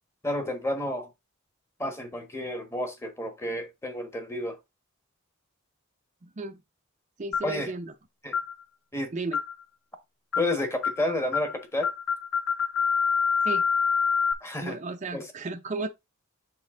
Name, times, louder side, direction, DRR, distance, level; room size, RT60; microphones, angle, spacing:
voice 1, 0.2-1.1 1.8-4.6 7.4-7.7 8.2-8.4 8.9-9.1 10.4-11.9 14.4-14.8 15.1-15.2, left 1 dB, 15° left, 1.4 m, -30 dB
voice 2, 6.2-6.6 7.2-7.9 9.1-9.4 13.4-13.6 14.6-15.9, right 3 dB, 35° right, 0.6 m, -34 dB
sound 1, 7.3-7.6 8.3-8.5 9.3-9.6 10.3-10.5 10.8-11.0 11.3-11.5 11.8-14.3, left 6 dB, 70° left, 1.0 m, -26 dB
7.2 x 4.2 x 3.8 m
head